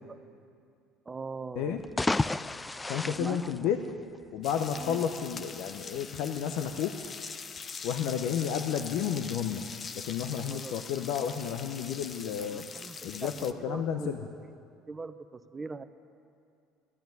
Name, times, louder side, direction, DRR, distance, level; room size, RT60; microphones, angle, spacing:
voice 1, 1.1-1.8 3.1-3.5 4.7-5.1 10.5-10.8 12.5-14.3 14.9-15.8, right 4 dB, 20° right, 10 dB, 0.8 m, -41 dB
sound 1, 1.8-4.4, left 2 dB, 15° left, 0.4 m, -32 dB
voice 2, 2.9-3.8 4.3-7.0 7.8-9.6 9.9-12.6 13.0-14.3, left 8 dB, 70° left, 6 dB, 0.8 m, -31 dB
sound 2, 4.4-13.5, left 5 dB, 35° left, 0.8 m, -43 dB
14.5 x 10.5 x 9.3 m, 2.4 s
supercardioid pair, 85°, 0 cm